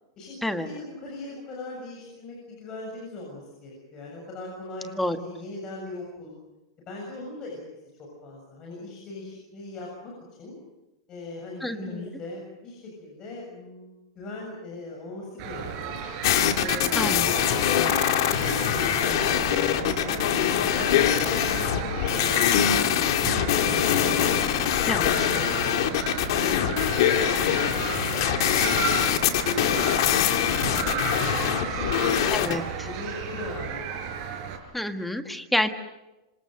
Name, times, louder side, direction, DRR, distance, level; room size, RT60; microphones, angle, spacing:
voice 1, 0.6-6.3 6.8-7.6 8.2-10.1 10.4-10.6 11.1-16.0 16.6-20.3 20.7-25.8 26.4-27.1 28.3-28.7 29.2-32.6 32.8-34.0, left 2 dB, 20° left, -2 dB, 7.3 m, -39 dB
voice 2, 11.6-12.1 17.0-17.3 24.9-25.1 32.3-32.6 34.7-35.7, left 1 dB, 5° left, 7 dB, 1.5 m, -28 dB
sound 1, 15.4-34.6, right 7 dB, 35° right, 4.6 m, -33 dB
sound 2, 16.2-32.5, left 11 dB, 55° left, 2.4 m, -23 dB
27.0 x 26.5 x 6.6 m, 1.0 s
supercardioid pair, 170°, 3 cm